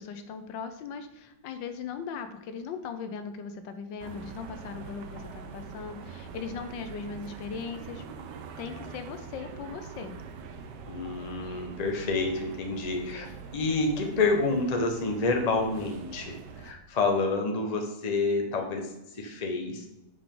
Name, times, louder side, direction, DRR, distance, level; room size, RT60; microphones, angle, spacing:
voice 1, 0.0-8.0 8.6-10.2, left 6 dB, 85° left, 9 dB, 1.4 m, -39 dB
sound 1, 4.0-16.7, right 6 dB, 70° right, 1.3 m, -44 dB
voice 2, 10.9-13.3 13.5-19.9, left 3 dB, 30° left, 2 dB, 0.9 m, -28 dB
9.7 x 4.9 x 3.8 m, 0.94 s
omnidirectional pair, 2.0 m